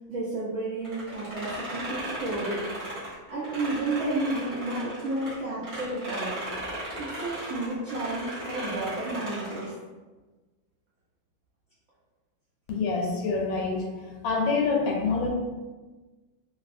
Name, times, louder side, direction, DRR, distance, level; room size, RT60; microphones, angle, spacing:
voice 1, 0.1-2.6 3.3-6.4 7.0-9.7, right 2 dB, 80° right, -8 dB, 0.6 m, -31 dB
sound 1, 0.8-5.3 5.6-9.7, right 1 dB, 30° right, 0.6 m, -36 dB
voice 2, 12.7-13.8 14.2-15.3, left 4 dB, 85° left, -1 dB, 1.4 m, -26 dB
2.9 x 2.6 x 2.4 m, 1.2 s
omnidirectional pair, 2.1 m